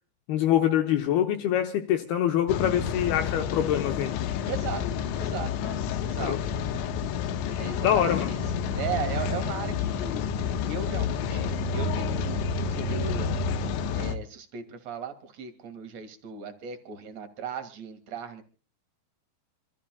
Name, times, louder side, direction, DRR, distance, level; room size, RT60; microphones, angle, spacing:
voice 1, 0.3-4.2 6.2-6.4 7.8-8.3, left 10 dB, 70° left, 2.6 m, -25 dB
Rain, 2.5-14.2, left 6 dB, 90° left, 3.4 m, -29 dB
voice 2, 4.5-4.8 5.2-6.4 7.6-8.4 8.7-10.2 10.6-12.4 12.7-13.7 13.9-18.4, right 6 dB, 50° right, 2.4 m, -37 dB
28.5 x 13.5 x 2.3 m
omnidirectional pair, 5.2 m